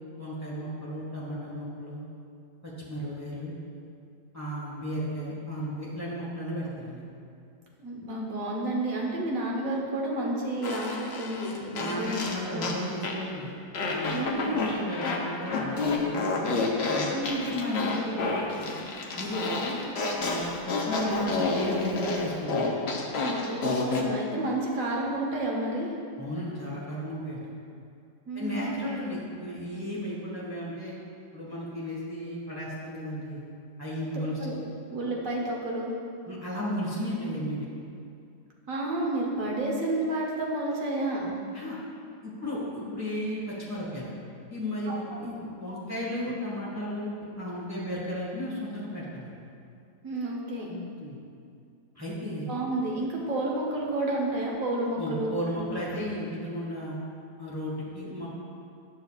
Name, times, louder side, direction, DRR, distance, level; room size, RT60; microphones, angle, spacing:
voice 1, 0.2-2.0 2.6-3.5 4.3-7.0 11.8-13.5 13.9-16.5 16.9-18.7 19.1-19.8 20.2-22.8 26.2-27.5 28.3-30.9 31.3-33.4 33.8-34.4 35.0-35.1 36.3-37.7 41.5-41.8 42.2-44.1 44.5-47.1 47.4-49.3 51.0-51.2 51.9-52.5 55.0-57.0 57.4-58.3, equal, 10° right, -7 dB, 1.4 m, -34 dB
voice 2, 7.8-12.2 12.5-12.7 14.1-14.7 17.1-17.4 23.2-25.9 28.3-28.7 34.4-34.5 34.9-35.9 38.7-41.4 44.9-45.4 50.0-50.8 52.5-55.6 55.9-56.0 58.0-58.1, right 1 dB, 55° right, -2 dB, 1.4 m, -30 dB
Fart, 10.6-13.3 13.7-24.1, left 3 dB, 60° left, 0.7 m, -30 dB
10.5 x 6.5 x 2.4 m, 2.4 s
omnidirectional pair, 1.8 m